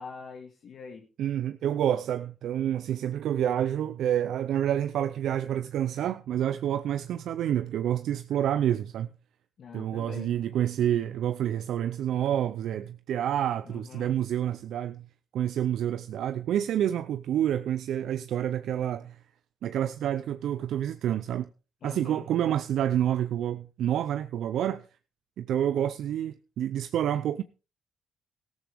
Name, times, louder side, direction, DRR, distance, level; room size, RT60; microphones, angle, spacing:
voice 1, 0.0-1.1 9.6-10.4 13.6-14.1 21.8-22.3, left 5 dB, 60° left, 1.9 m, -43 dB
voice 2, 1.2-9.1 9.7-15.1 15.3-19.2 19.6-21.5 21.8-24.8 25.4-27.4, right 10 dB, 75° right, 0.5 m, -28 dB
14.0 x 13.5 x 3.5 m
cardioid pair, 90°, 0 cm